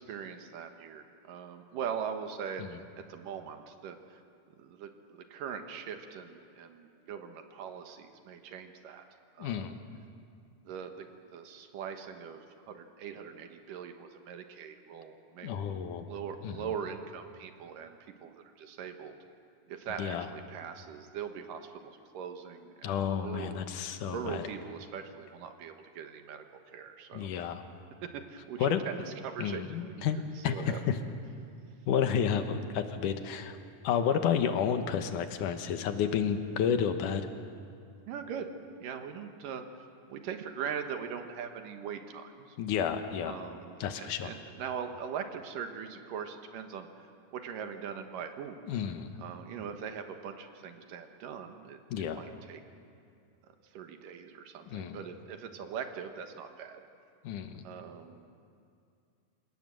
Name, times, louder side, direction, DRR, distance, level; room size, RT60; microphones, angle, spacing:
voice 1, 0.0-2.6 3.0-4.2 4.6-9.1 9.3-9.8 10.6-15.5 16.0-19.2 19.7-27.5 28.0-30.8 38.1-38.5 38.8-39.6 40.1-42.6 43.3-46.9 47.3-48.7 49.2-51.8 52.1-52.6 53.5-56.8 57.6-58.3, right 7 dB, 90° right, 6 dB, 3.0 m, -41 dB
voice 2, 9.4-9.8 15.4-16.1 16.4-16.6 20.0-20.3 22.8-24.4 27.1-27.6 28.6-28.8 29.4-30.9 31.9-33.6 33.8-37.3 42.6-43.4 43.8-44.3 48.7-49.1 51.9-52.2 54.7-55.0 57.2-57.6, left 8 dB, 75° left, 8 dB, 2.6 m, -31 dB
27.5 x 18.0 x 7.7 m, 2.4 s
omnidirectional pair, 3.7 m